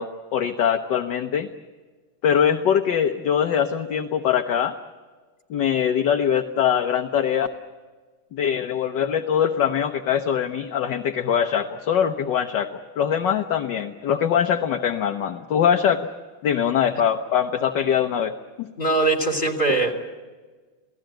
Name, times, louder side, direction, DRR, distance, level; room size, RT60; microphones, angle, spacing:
voice 1, 0.0-1.5 2.2-4.7 5.5-7.5 8.3-16.1 16.4-18.3 18.6-18.7, left 8 dB, 65° left, 5 dB, 1.6 m, -22 dB
voice 2, 18.8-19.9, right 3 dB, 30° left, 3 dB, 3.5 m, -21 dB
28.5 x 18.0 x 9.1 m, 1.4 s
omnidirectional pair, 2.2 m